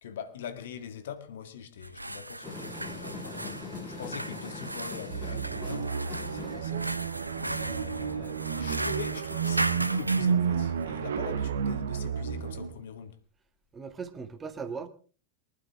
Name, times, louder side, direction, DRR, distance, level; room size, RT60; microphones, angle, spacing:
voice 1, 0.0-3.4 3.9-6.9 7.4-13.2, left 8 dB, 60° left, 1.8 m, -42 dB
sound 1, 1.8-10.3, right 1 dB, 85° right, 0.7 m, -37 dB
sound 2, 2.4-7.6, left 2 dB, 25° left, 7.3 m, -42 dB
sound 3, 5.1-12.7, right 7 dB, 65° right, 1.2 m, -31 dB
voice 2, 13.7-14.9, right 5 dB, 20° right, 2.0 m, -38 dB
23.5 x 12.0 x 3.4 m
figure-of-eight pair, 90°, 0 cm